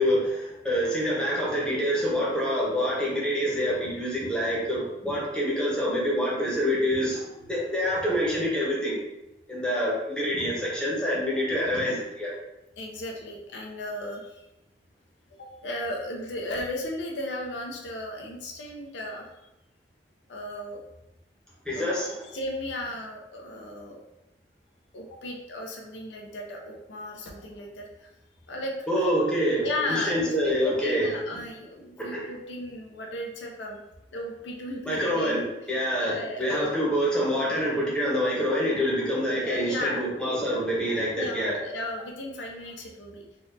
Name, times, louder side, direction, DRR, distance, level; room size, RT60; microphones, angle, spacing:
voice 1, 0.0-9.0 9.5-12.3 21.6-22.2 28.9-31.1 32.0-32.3 34.9-41.6, equal, 5° left, -6 dB, 0.8 m, -26 dB
voice 2, 12.8-14.5 15.4-19.3 20.3-20.8 21.7-24.0 24.9-28.1 28.5-29.1 29.6-33.8 34.1-35.4 35.9-36.8 39.4-40.0 41.1-43.2, left 1 dB, 90° left, 0 dB, 0.6 m, -35 dB
4.1 x 2.4 x 2.6 m, 0.90 s
head